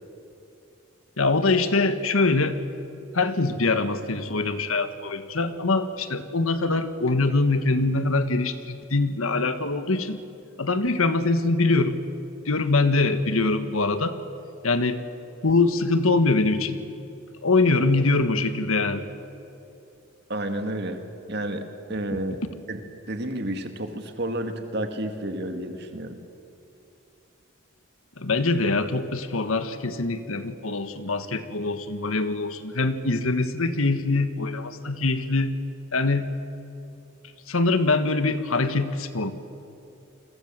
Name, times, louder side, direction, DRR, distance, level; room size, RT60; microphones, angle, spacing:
voice 1, 1.2-2.6 3.1-10.2 10.6-12.0 12.4-14.2 14.6-15.0 15.4-16.8 17.4-19.1 28.2-35.6 35.9-36.3 37.5-39.3, left 3 dB, 85° left, 10 dB, 1.6 m, -23 dB
voice 2, 20.3-21.0 21.3-21.6 21.9-22.4 22.7-22.8 23.1-26.2, right 1 dB, 50° right, 6 dB, 2.1 m, -30 dB
29.5 x 22.0 x 7.6 m, 2.8 s
head